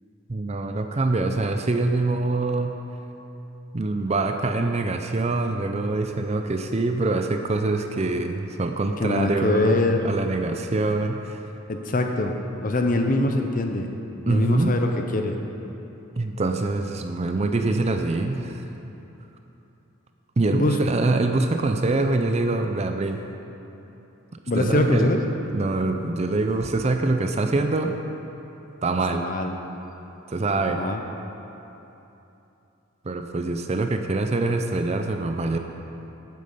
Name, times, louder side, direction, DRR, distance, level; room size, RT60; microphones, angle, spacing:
voice 1, 0.3-2.8 3.7-9.7 10.0-11.5 14.3-14.8 16.2-18.6 20.4-23.2 24.5-25.1 25.5-27.9 28.8-29.2 30.3-30.8 33.0-35.6, right 2 dB, 30° right, 5 dB, 0.5 m, -24 dB
voice 2, 9.0-10.0 11.7-13.9 14.3-15.4 20.5-20.8 24.5-25.2 29.1-29.5 30.5-31.0, left 2 dB, 40° left, 4 dB, 0.7 m, -23 dB
11.5 x 9.3 x 5.5 m, 3.0 s
head